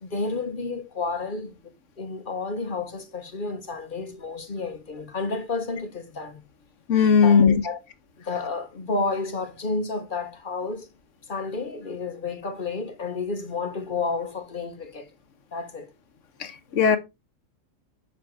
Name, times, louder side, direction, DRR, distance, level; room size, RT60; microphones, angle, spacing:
voice 1, 0.0-6.4 7.2-7.8 8.2-10.9 11.3-15.1 15.5-15.9, left 3 dB, 40° left, 1.1 m, -31 dB
voice 2, 6.9-7.5 16.4-17.0, left 6 dB, 70° left, 1.4 m, -18 dB
7.9 x 5.9 x 3.6 m
omnidirectional pair, 1.4 m